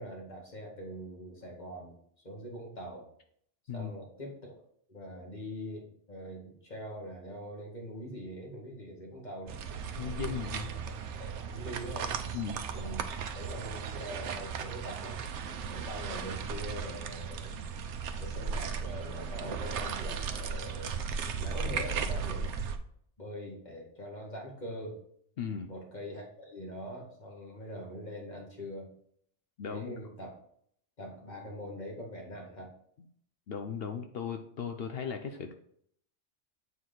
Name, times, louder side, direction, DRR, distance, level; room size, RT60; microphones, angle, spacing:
voice 1, 0.0-2.0 2.2-3.1 3.7-4.5 4.9-9.6 10.0-12.1 12.7-15.2 15.7-17.6 18.2-22.5 23.2-25.0 25.6-28.9 29.7-30.3 31.0-32.7, equal, 40° left, -2 dB, 2.1 m, -43 dB
sound 1, 9.5-22.8, right 6 dB, 80° right, 1.0 m, -36 dB
voice 2, 10.0-10.7 12.3-12.6 25.4-25.7 29.6-30.0 33.5-35.5, left 7 dB, 60° left, 5 dB, 0.8 m, -37 dB
8.1 x 4.7 x 3.9 m, 0.66 s
omnidirectional pair, 1.2 m